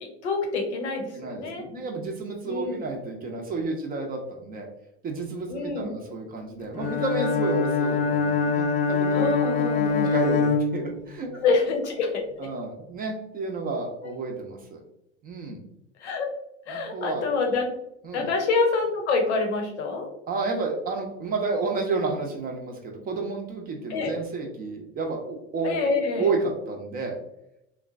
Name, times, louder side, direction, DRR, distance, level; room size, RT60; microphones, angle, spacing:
voice 1, 0.2-1.7 2.5-2.9 5.5-5.9 9.1-10.1 11.4-12.2 16.0-16.3 16.7-17.7 18.1-20.1 23.9-24.1 25.6-26.3, left 4 dB, 75° left, 2 dB, 0.8 m, -26 dB
voice 2, 1.1-4.7 5.0-9.3 10.0-11.3 12.4-14.8 15.2-15.6 16.7-17.3 18.0-18.3 20.3-25.8 26.2-27.2, right 3 dB, 25° right, 2 dB, 0.5 m, -31 dB
Bowed string instrument, 6.8-11.4, left 5 dB, 25° left, 0.3 m, -24 dB
3.1 x 2.1 x 2.4 m, 0.81 s
hypercardioid pair, 85°, 34 cm